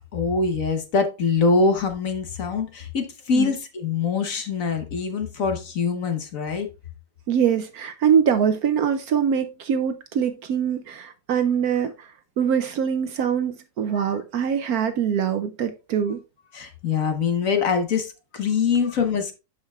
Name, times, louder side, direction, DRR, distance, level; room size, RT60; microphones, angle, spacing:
voice 1, 0.1-6.7 14.0-14.2 16.5-19.3, left 5 dB, 55° left, 1.4 m, -24 dB
voice 2, 7.3-16.2, right 8 dB, 65° right, 1.0 m, -23 dB
12.0 x 5.1 x 2.3 m
omnidirectional pair, 1.9 m